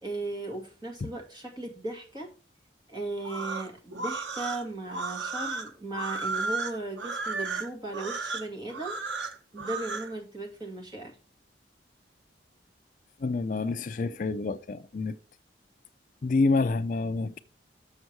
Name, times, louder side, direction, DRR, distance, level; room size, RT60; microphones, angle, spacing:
voice 1, 0.0-2.3 2.9-9.0 9.5-11.2, right 2 dB, 25° right, 1.9 m, -37 dB
sound 1, 3.2-10.1, right 4 dB, 85° right, 1.0 m, -34 dB
voice 2, 13.2-15.2 16.2-17.4, left 3 dB, 45° left, 0.4 m, -27 dB
7.1 x 6.6 x 4.5 m
head